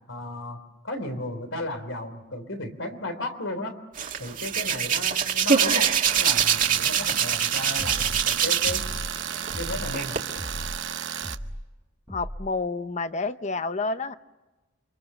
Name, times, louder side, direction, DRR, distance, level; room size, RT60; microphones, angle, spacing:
voice 1, 0.1-3.8 4.2-5.9 6.2-8.8 9.6-10.2, left 1 dB, 85° left, 8 dB, 3.3 m, -34 dB
Hands, 4.0-9.0 9.3-10.2, right 8 dB, 45° right, 1.7 m, -24 dB
Tools, 6.1-11.3, right 9 dB, 65° right, 0.9 m, -33 dB
sound 1, 7.8-8.3 8.6-9.1 9.5-10.0 10.4-10.8 11.2-11.6 12.1-12.5, equal, ahead, 0.9 m, -36 dB
voice 2, 12.1-14.1, left 3 dB, 35° left, 12 dB, 0.8 m, -29 dB
29.0 x 25.0 x 6.8 m, 1.1 s
head